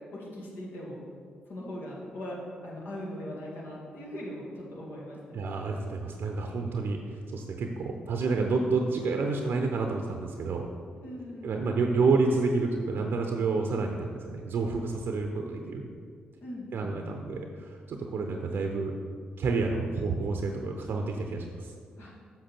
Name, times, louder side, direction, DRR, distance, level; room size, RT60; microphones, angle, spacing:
voice 1, 0.1-1.0 1.5-2.4 2.6-5.5 11.0-11.6 16.4-17.0 22.0-22.1, left 1 dB, 65° left, -5 dB, 2.1 m, -40 dB
voice 2, 5.3-7.0 7.3-10.7 11.4-15.8 16.7-18.9 19.4-21.7, right 4 dB, 60° right, 3 dB, 0.6 m, -29 dB
7.5 x 5.8 x 4.4 m, 2.1 s
hypercardioid pair, 40°, 4 cm